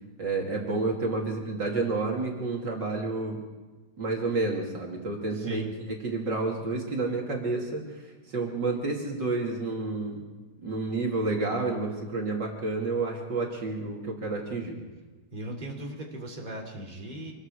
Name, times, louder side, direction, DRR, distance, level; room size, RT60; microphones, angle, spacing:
voice 1, 0.2-3.4 4.0-10.2 10.6-14.8, right 3 dB, 55° right, -1 dB, 3.2 m, -30 dB
voice 2, 5.3-5.7 15.3-17.3, right 1 dB, 20° right, 0 dB, 3.2 m, -38 dB
25.5 x 21.0 x 4.9 m, 1.3 s
omnidirectional pair, 2.3 m